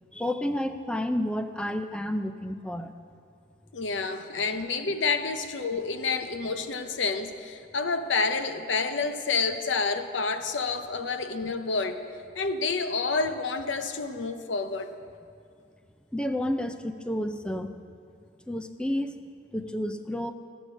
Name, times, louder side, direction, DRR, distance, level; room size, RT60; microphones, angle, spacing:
voice 1, 0.1-2.9 16.1-17.8 18.5-19.2 19.5-20.3, left 1 dB, 5° left, 8 dB, 0.4 m, -30 dB
voice 2, 3.7-12.0 12.3-14.9, left 4 dB, 80° left, 9 dB, 0.7 m, -29 dB
13.0 x 7.9 x 6.2 m, 2.4 s
head